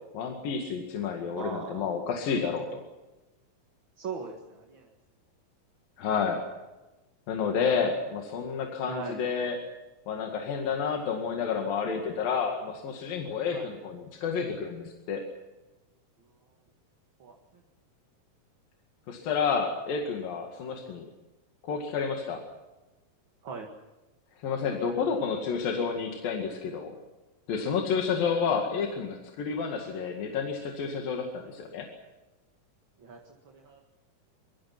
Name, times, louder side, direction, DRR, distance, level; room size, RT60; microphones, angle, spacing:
voice 1, 0.1-2.8 6.0-6.4 7.3-9.6 10.1-15.2 19.1-21.1 21.6-22.4 24.4-26.9 27.5-31.9, left 6 dB, 80° left, 2 dB, 3.8 m, -30 dB
voice 2, 1.4-1.9 4.0-4.9 8.9-9.2 13.5-13.7 17.2-17.4 20.6-20.7 23.4-23.7 33.0-33.9, right 5 dB, 40° right, 1 dB, 2.3 m, -40 dB
25.5 x 23.0 x 6.0 m, 1.1 s
omnidirectional pair, 4.0 m